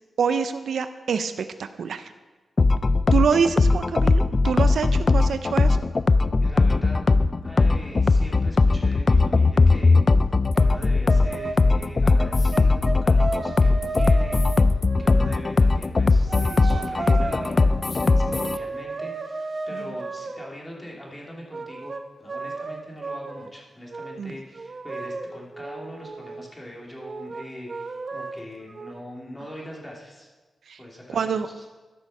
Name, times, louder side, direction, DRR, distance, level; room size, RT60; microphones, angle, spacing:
voice 1, 0.2-2.1 3.1-5.8 19.7-19.9 24.2-24.4 30.7-30.8 31.1-31.5, right 6 dB, 80° right, 10 dB, 0.5 m, -26 dB
sound 1, 2.6-18.6, left 3 dB, 40° left, 0.3 m, -19 dB
voice 2, 6.4-7.0 7.4-10.0 10.5-30.3 30.8-31.7, equal, 15° left, -3 dB, 2.8 m, -41 dB
sound 2, 10.5-10.8 11.1-11.7 12.2-15.5 16.3-20.5 21.5-23.5 23.9-24.2 24.5-26.5 27.0-29.0, right 3 dB, 45° right, 0.7 m, -34 dB
13.0 x 6.3 x 5.5 m, 1.3 s
cardioid pair, 80°, 0 cm